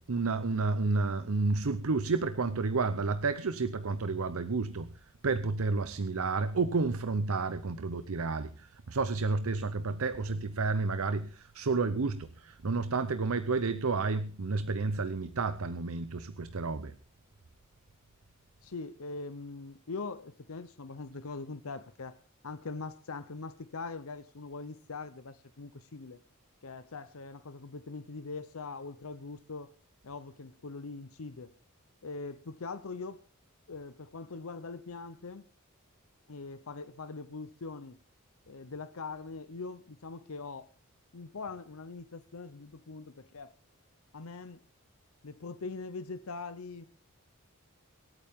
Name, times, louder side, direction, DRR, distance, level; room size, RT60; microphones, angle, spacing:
voice 1, 0.0-4.9 5.2-16.9, right 3 dB, 75° right, 0.7 m, -31 dB
voice 2, 18.6-22.2 22.4-26.2 26.6-29.7 30.0-31.6 32.0-33.2 33.7-35.5 36.3-38.0 38.5-40.7 41.1-43.5 44.1-44.6 45.2-46.8, left 4 dB, 75° left, 0.8 m, -42 dB
25.0 x 9.0 x 3.6 m
head